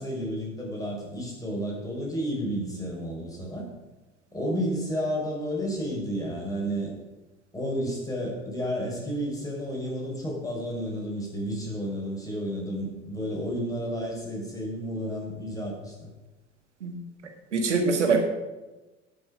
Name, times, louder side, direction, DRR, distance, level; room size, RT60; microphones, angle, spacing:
voice 1, 0.0-3.6 4.3-6.9 7.5-16.1, equal, 10° left, -2 dB, 4.8 m, -31 dB
voice 2, 17.5-18.2, right 4 dB, 80° right, 5 dB, 1.8 m, -24 dB
17.5 x 6.2 x 5.1 m, 1.1 s
figure-of-eight pair, 70°, 35 cm